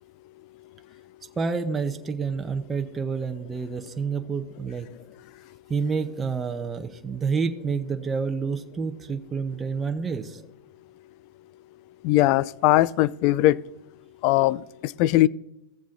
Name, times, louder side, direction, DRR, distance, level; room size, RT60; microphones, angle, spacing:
voice 1, 1.4-4.9 5.7-10.4, right 5 dB, 20° right, 6 dB, 0.7 m, -28 dB
voice 2, 12.0-13.6 14.2-15.3, left 16 dB, 55° left, 21 dB, 0.3 m, -20 dB
15.5 x 7.2 x 2.6 m, 0.92 s
hypercardioid pair, 105°, 0 cm